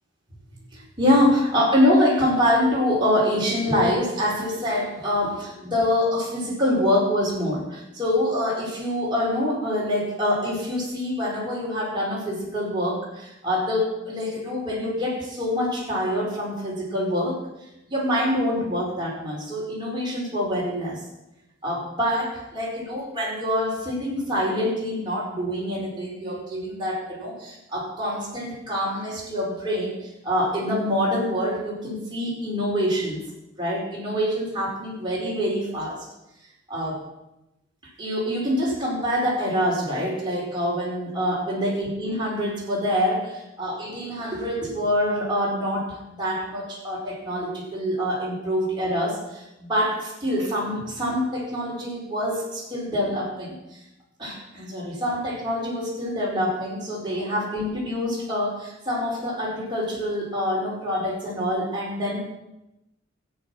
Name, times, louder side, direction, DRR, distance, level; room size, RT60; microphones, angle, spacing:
voice 1, 0.7-17.4 17.9-21.0 21.6-30.0 30.2-33.2 33.6-36.1 36.7-37.0 38.0-53.8 54.2-62.2, equal, 25° right, -4 dB, 4.8 m, -25 dB
13.5 x 9.5 x 6.2 m, 0.92 s
head